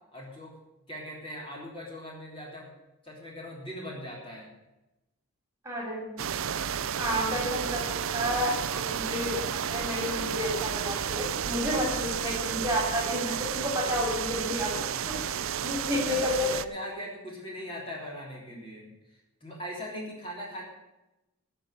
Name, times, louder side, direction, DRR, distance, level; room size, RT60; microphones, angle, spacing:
voice 1, 0.1-0.5 0.9-2.7 3.0-4.5 15.9-18.9 19.4-20.6, equal, 25° left, -3 dB, 3.4 m, -40 dB
voice 2, 5.7-6.2 7.0-14.7 15.1-15.4 15.6-16.5, left 1 dB, 15° right, -2 dB, 3.3 m, -31 dB
sound 1, 6.2-16.6, right 8 dB, 60° right, 0.5 m, -32 dB
14.5 x 5.6 x 9.7 m, 0.97 s
head